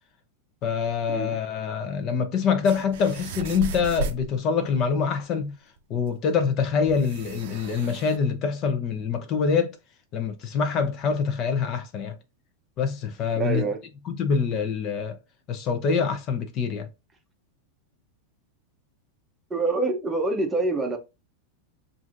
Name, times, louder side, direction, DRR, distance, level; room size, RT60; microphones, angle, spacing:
voice 1, 0.6-5.5 5.9-9.8 10.1-12.2 12.8-13.7 14.1-15.2 15.5-16.9, left 6 dB, 35° left, 0.6 m, -25 dB
sound 1, 2.6-4.3 5.8-5.9 6.1-6.2 6.9-8.2, right 3 dB, 65° right, 0.5 m, -34 dB
voice 2, 13.3-13.8 19.5-21.0, right 3 dB, 15° right, 0.7 m, -26 dB
6.0 x 2.5 x 2.5 m
supercardioid pair, 150°, 0 cm